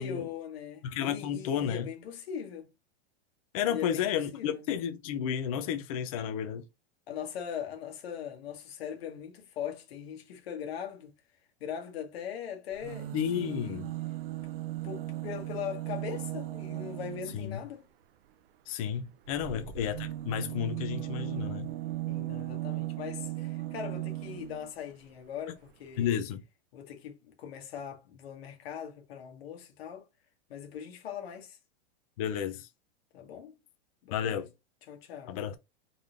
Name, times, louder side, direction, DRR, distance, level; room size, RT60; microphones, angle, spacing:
voice 1, 0.0-2.7 3.7-4.7 7.1-11.1 11.6-13.8 14.8-17.9 19.4-19.7 22.1-26.2 26.7-30.1 30.5-31.6 33.1-33.6 34.0-34.5 34.9-35.4, left 8 dB, 65° left, 1.3 m, -40 dB
voice 2, 0.8-1.9 3.5-6.7 13.1-13.9 17.3-17.6 18.7-21.7 26.0-26.4 32.2-32.7 34.1-34.5 35.3-35.6, left 9 dB, 35° left, 0.4 m, -32 dB
sound 1, 12.7-17.6 19.2-24.7 25.7-25.8 26.0-26.1, right 15 dB, 55° right, 0.5 m, -37 dB
3.8 x 3.3 x 2.5 m
supercardioid pair, 170°, 33 cm